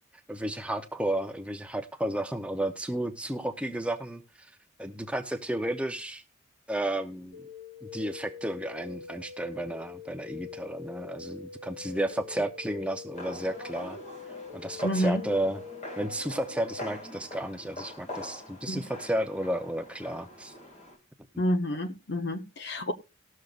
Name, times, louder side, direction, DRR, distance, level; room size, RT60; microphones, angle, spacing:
voice 1, 0.3-4.2 4.8-6.2 6.7-7.4 7.8-14.0 14.5-15.6 16.0-20.5, right 1 dB, 5° right, 0.6 m, -32 dB
sound 1, 7.3-16.9, left 6 dB, 85° left, 3.6 m, -44 dB
sound 2, 13.1-21.0, left 1 dB, 35° left, 1.9 m, -44 dB
voice 2, 14.8-15.2 18.7-18.8 21.4-22.9, equal, 55° left, 0.8 m, -28 dB
19.0 x 6.5 x 2.4 m
head